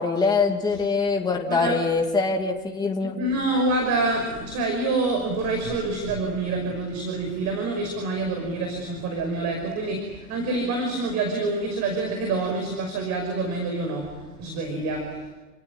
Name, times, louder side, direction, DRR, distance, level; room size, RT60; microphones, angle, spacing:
voice 1, 0.0-3.2, left 4 dB, 10° left, 1 dB, 2.8 m, -23 dB
voice 2, 3.2-14.1 14.4-15.1, right 2 dB, 35° right, 3 dB, 5.9 m, -26 dB
30.0 x 18.0 x 9.7 m, 1.2 s
hypercardioid pair, 120°, 49 cm